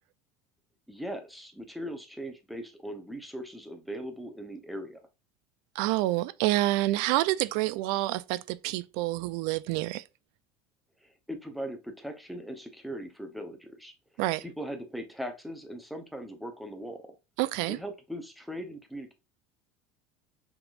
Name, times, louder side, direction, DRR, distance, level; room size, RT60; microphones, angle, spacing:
voice 1, 0.9-5.1 11.0-13.9 14.4-17.1 17.7-19.1, equal, ahead, 0.8 m, -39 dB
voice 2, 5.8-10.0 14.2-14.4 17.4-17.8, right 17 dB, 65° right, 0.4 m, -28 dB
5.8 x 3.6 x 2.5 m
cardioid pair, 150°, 8 cm